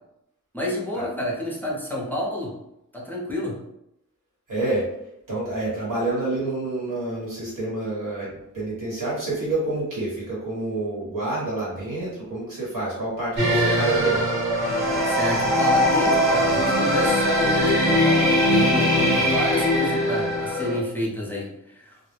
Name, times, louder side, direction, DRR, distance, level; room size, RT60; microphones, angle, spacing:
voice 1, 0.5-2.5 2.9-3.6 15.0-22.0, left 1 dB, 5° left, -4 dB, 0.6 m, -29 dB
voice 2, 4.5-4.8 5.3-14.2, right 2 dB, 90° right, -6 dB, 1.3 m, -28 dB
sound 1, 13.4-20.8, equal, 60° right, 1.2 m, -21 dB
2.4 x 2.0 x 3.2 m, 0.83 s
wide cardioid pair, 115°, 31 cm